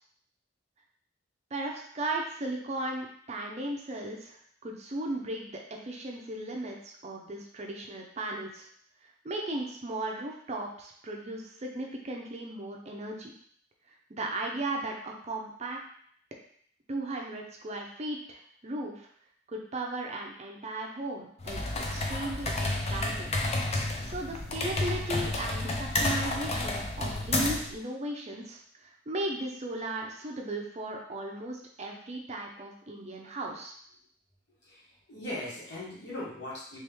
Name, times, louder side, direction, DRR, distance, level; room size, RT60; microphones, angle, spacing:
voice 1, 1.5-6.8 7.0-8.7 9.2-13.3 14.1-15.8 16.9-19.1 19.5-21.6 21.9-23.3 24.1-33.7, right 2 dB, 35° right, 1 dB, 0.5 m, -36 dB
sound 1, 21.4-27.7, left 2 dB, 35° left, 0.5 m, -31 dB
voice 2, 34.6-36.8, left 1 dB, 60° left, -6 dB, 1.5 m, -39 dB
3.1 x 3.0 x 3.4 m, 0.62 s
head